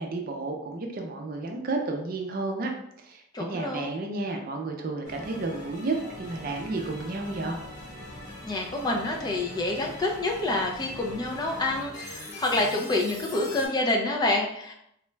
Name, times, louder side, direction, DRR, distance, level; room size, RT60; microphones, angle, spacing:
voice 1, 0.0-2.7 3.0-7.6, right 3 dB, 45° right, 3 dB, 0.5 m, -32 dB
voice 2, 3.3-3.9 8.4-14.7, left 2 dB, 20° left, 0 dB, 0.4 m, -27 dB
sound 1, 5.0-13.7, left 1 dB, 55° left, 1.5 m, -42 dB
3.9 x 2.2 x 3.2 m, 0.75 s
head